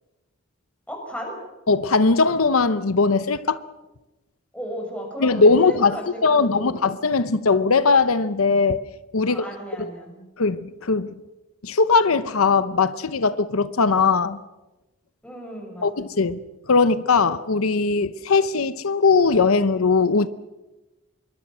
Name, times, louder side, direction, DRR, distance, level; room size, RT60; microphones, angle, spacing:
voice 1, 0.9-1.3 4.5-6.8 9.3-10.2 15.2-15.9, equal, 5° left, 6.2 m, -35 dB
voice 2, 1.7-3.6 5.2-6.0 6.2-8.8 9.1-9.4 9.8-9.9 10.4-11.1 11.6-14.4 15.8-16.4 16.7-20.3, left 4 dB, 85° left, 0.8 m, -19 dB
26.5 x 22.5 x 6.2 m
head